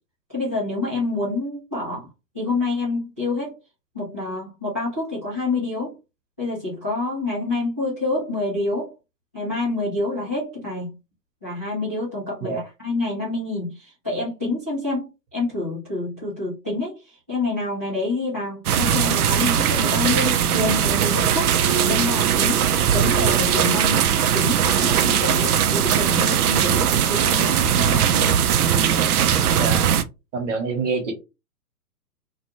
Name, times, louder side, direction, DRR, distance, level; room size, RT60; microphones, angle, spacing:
voice 1, 0.3-2.1 2.3-3.6 3.9-5.9 6.4-8.9 9.3-10.9 11.4-22.7 22.9-24.0 24.3-28.4, left 2 dB, 10° left, -12 dB, 0.3 m, -27 dB
sound 1, 18.7-30.0, right 9 dB, 65° right, 0.5 m, -19 dB
voice 2, 29.5-29.9 30.3-31.1, right 4 dB, 50° right, 5 dB, 1.0 m, -26 dB
2.4 x 2.3 x 2.8 m, 0.26 s
figure-of-eight pair, 125°, 49 cm